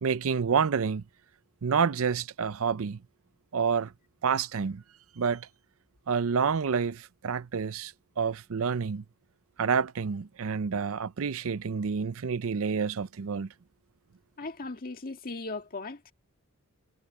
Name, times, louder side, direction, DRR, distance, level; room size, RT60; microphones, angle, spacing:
voice 1, 0.0-1.0 1.6-3.0 3.5-3.9 4.2-4.8 5.2-5.5 6.1-9.0 9.6-13.5, right 6 dB, 65° right, 0.5 m, -28 dB
voice 2, 14.4-16.1, left 3 dB, 40° left, 1.9 m, -38 dB
head